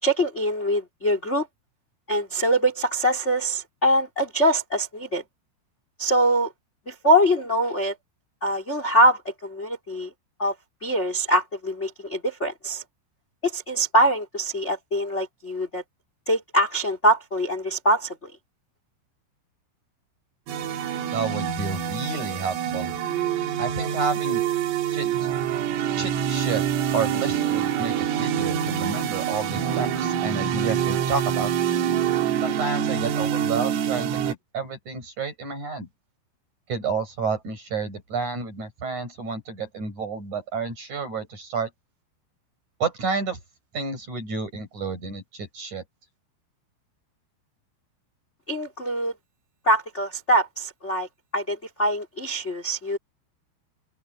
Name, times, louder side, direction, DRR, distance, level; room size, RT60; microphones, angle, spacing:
voice 1, 0.0-1.5 2.1-5.2 6.0-6.5 6.9-7.9 8.4-10.1 10.4-10.5 10.8-12.8 13.4-15.8 16.3-18.3 48.5-49.1 49.6-51.1 51.3-53.0, equal, 15° left, 2.8 m, -23 dB
sound 1, 20.5-34.3, right 9 dB, 85° right, 4.7 m, -26 dB
voice 2, 21.1-22.9 23.6-24.4 24.9-25.3 26.0-26.6 26.9-31.5 32.4-35.9 36.7-41.7 42.8-43.4 43.7-45.8, right 4 dB, 35° right, 8.4 m, -30 dB
omnidirectional pair, 5.8 m